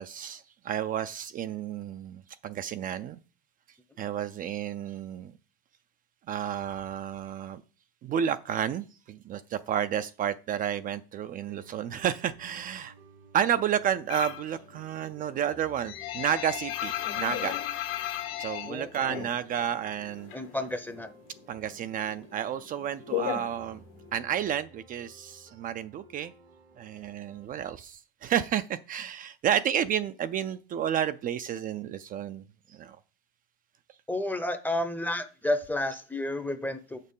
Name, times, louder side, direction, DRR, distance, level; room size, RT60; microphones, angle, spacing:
voice 1, 0.0-3.2 4.0-5.3 6.3-7.6 8.0-12.9 13.3-17.6 18.4-20.3 21.5-23.8 24.1-26.3 26.8-32.4 32.7-33.0, right 9 dB, 30° right, 12 dB, 0.4 m, -31 dB
sound 1, 11.5-27.5, right 2 dB, 85° right, 2.6 m, -56 dB
sound 2, 14.1-14.5 14.9-19.8 20.0-21.1 21.4-24.2, left 12 dB, 85° left, 1.8 m, -34 dB
voice 2, 20.3-21.1 34.1-37.0, left 1 dB, 5° left, 9 dB, 0.6 m, -31 dB
6.9 x 6.5 x 5.4 m, 0.36 s
supercardioid pair, 135°, 29 cm